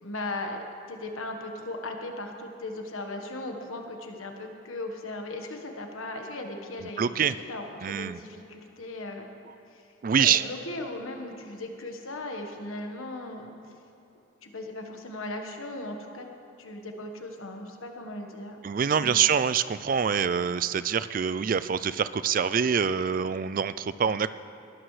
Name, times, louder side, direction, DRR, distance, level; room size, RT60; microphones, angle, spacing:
voice 1, 0.0-9.3 9.7-9.8 10.2-13.7 14.4-16.3 16.6-18.6 18.9-19.2, left 2 dB, 80° left, 3 dB, 1.4 m, -37 dB
voice 2, 7.0-7.3 7.8-8.2 10.0-10.4 18.6-24.3, right 7 dB, 40° right, 15 dB, 0.3 m, -25 dB
20.5 x 12.5 x 3.3 m, 2.9 s
head